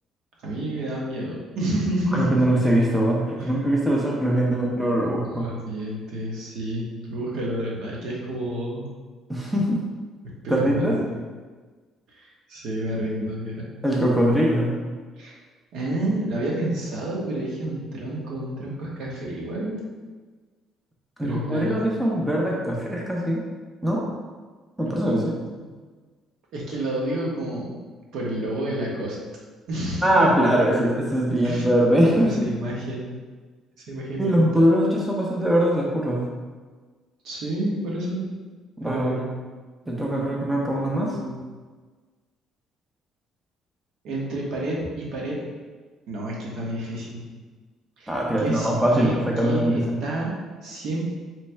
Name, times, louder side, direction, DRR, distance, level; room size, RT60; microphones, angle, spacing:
voice 1, 0.4-2.3 3.4-3.5 5.3-8.8 10.4-11.2 12.1-13.7 15.2-15.3 15.7-19.8 21.2-21.8 25.5-25.7 26.5-27.7 28.1-29.2 29.7-30.2 31.4-31.6 32.1-33.1 33.9-34.7 37.2-38.3 38.8-39.3 41.0-41.4 44.0-45.4 46.1-47.2 48.0-51.0, right 1 dB, 70° right, -3 dB, 1.1 m, -30 dB
voice 2, 2.1-5.5 9.3-9.8 10.5-11.0 13.8-14.7 21.2-23.4 23.8-24.0 24.8-25.4 30.0-32.5 34.2-36.3 38.8-39.2 39.9-41.2 48.1-49.1 49.4-50.0, right 1 dB, 5° right, -3 dB, 0.6 m, -22 dB
3.2 x 3.2 x 4.5 m, 1.4 s
cardioid pair, 150°, 0 cm